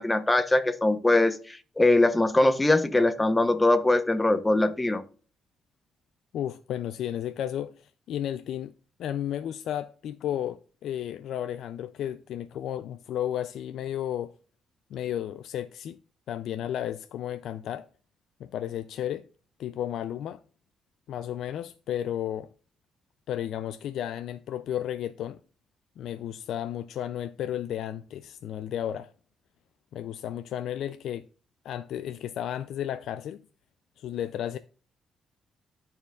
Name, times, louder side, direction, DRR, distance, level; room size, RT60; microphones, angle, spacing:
voice 1, 0.0-5.0, left 2 dB, 15° left, 0.7 m, -22 dB
voice 2, 6.3-8.7 9.0-14.3 14.9-16.0 16.3-17.9 18.4-19.2 19.6-20.4 21.1-22.5 23.3-25.4 26.0-29.1 29.9-31.2 31.6-33.4 34.0-34.6, left 10 dB, 75° left, 0.3 m, -33 dB
12.5 x 4.5 x 2.3 m
cardioid pair, 90°, 0 cm